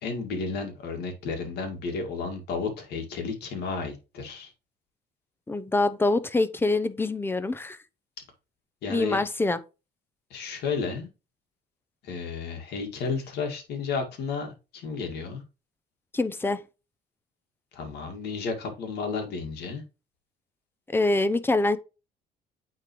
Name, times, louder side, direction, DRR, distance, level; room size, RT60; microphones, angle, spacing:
voice 1, 0.0-4.5 8.8-9.2 10.3-11.1 12.0-15.4 17.7-19.8, left 4 dB, 75° left, 2.1 m, -32 dB
voice 2, 5.5-7.8 8.9-9.6 16.1-16.6 20.9-21.8, left 2 dB, 15° left, 0.6 m, -25 dB
8.8 x 3.8 x 3.1 m
cardioid pair, 110°, 17 cm